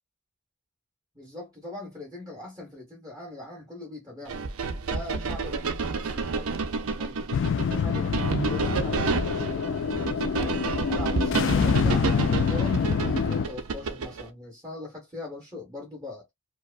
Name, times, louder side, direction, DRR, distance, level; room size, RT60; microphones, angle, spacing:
voice 1, 1.1-4.4 4.9-7.3 7.8-9.8 10.3-16.3, left 2 dB, 15° right, 1.2 m, -41 dB
sound 1, 4.3-14.3, right 4 dB, 75° right, 0.6 m, -30 dB
sound 2, 7.3-13.5, left 6 dB, 55° left, 0.3 m, -26 dB
4.6 x 2.1 x 2.4 m
head